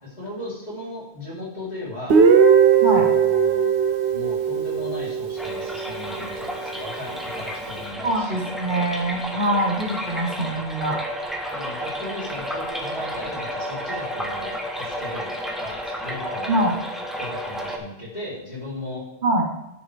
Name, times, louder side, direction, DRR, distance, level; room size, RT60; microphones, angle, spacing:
voice 1, 0.0-2.2 2.9-3.7 4.1-8.5 11.5-16.8 17.2-19.1, left 1 dB, 40° left, -7 dB, 3.7 m, -36 dB
Guitar, 2.1-5.9, right 6 dB, 80° right, 1.1 m, -18 dB
sound 1, 5.4-17.8, equal, ahead, 1.1 m, -32 dB
voice 2, 8.0-11.0 16.5-16.8 19.2-19.5, right 1 dB, 50° right, 1 dB, 1.3 m, -23 dB
10.0 x 7.7 x 3.4 m, 0.89 s
omnidirectional pair, 1.1 m